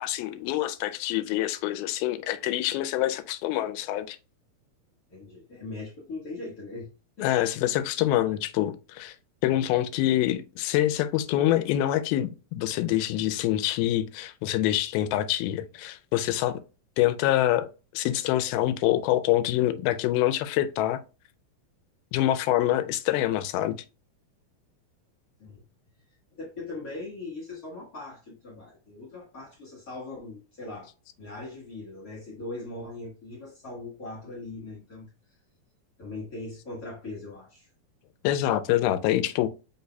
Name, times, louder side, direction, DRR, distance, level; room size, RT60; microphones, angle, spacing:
voice 1, 0.0-4.2 7.2-9.2 9.4-16.6 17.0-17.7 17.9-21.0 22.1-23.8 38.2-39.5, left 13 dB, 85° left, 2.4 m, -25 dB
voice 2, 5.1-6.9 7.2-7.3 8.2-8.4 25.4-25.6 26.3-30.9 31.2-35.1 36.0-37.7, left 2 dB, 50° left, 1.1 m, -40 dB
5.4 x 4.1 x 2.2 m
omnidirectional pair, 4.3 m